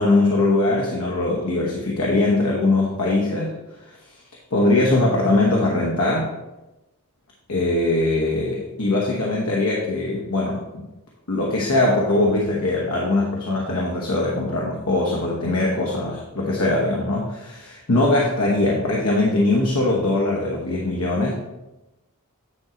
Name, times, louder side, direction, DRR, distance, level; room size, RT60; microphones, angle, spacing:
voice 1, 0.0-3.5 4.5-6.3 7.5-10.8 11.3-21.3, left 2 dB, 75° left, -3 dB, 1.1 m, -21 dB
9.6 x 4.4 x 3.8 m, 1.0 s
head